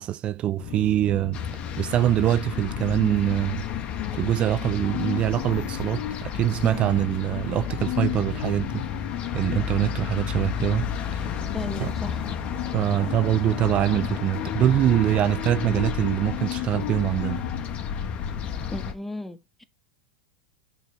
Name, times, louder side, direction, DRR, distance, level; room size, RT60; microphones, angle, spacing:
voice 1, 0.0-1.4 1.8-3.6 4.1-8.8 9.3-11.3 11.8-11.9 12.7-17.4, right 12 dB, 35° right, 0.4 m, -24 dB
sound 1, 0.6-18.9, left 11 dB, 55° left, 1.6 m, -34 dB
sound 2, 1.3-18.9, left 7 dB, 35° left, 1.4 m, -33 dB
voice 2, 11.5-12.3 18.7-19.6, left 1 dB, 5° left, 1.1 m, -35 dB
6.7 x 4.7 x 5.7 m
hypercardioid pair, 105°, 3 cm